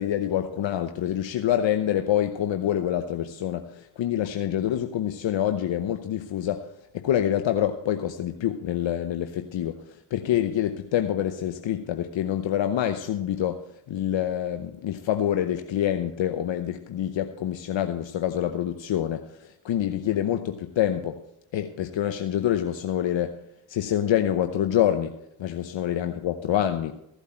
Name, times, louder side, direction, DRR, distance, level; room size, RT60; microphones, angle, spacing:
voice 1, 0.0-21.2 21.5-23.4 23.7-27.0, left 11 dB, 70° left, 7 dB, 0.9 m, -26 dB
15.5 x 8.2 x 4.4 m, 0.79 s
supercardioid pair, 45°, 47 cm